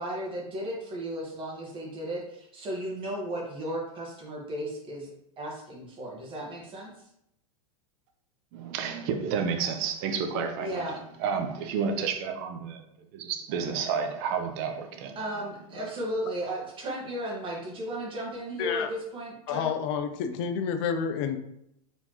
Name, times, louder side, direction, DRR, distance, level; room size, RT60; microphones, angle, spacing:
voice 1, 0.0-5.1 5.4-6.9 10.6-11.0 15.1-19.7, right 1 dB, 25° right, 1.5 m, -35 dB
voice 2, 8.5-10.9 11.2-12.8 13.1-15.2, right 6 dB, 50° right, 0.8 m, -30 dB
voice 3, 18.6-18.9 19.5-21.4, left 7 dB, 50° left, 0.6 m, -29 dB
4.3 x 3.5 x 3.0 m
hypercardioid pair, 125°, 19 cm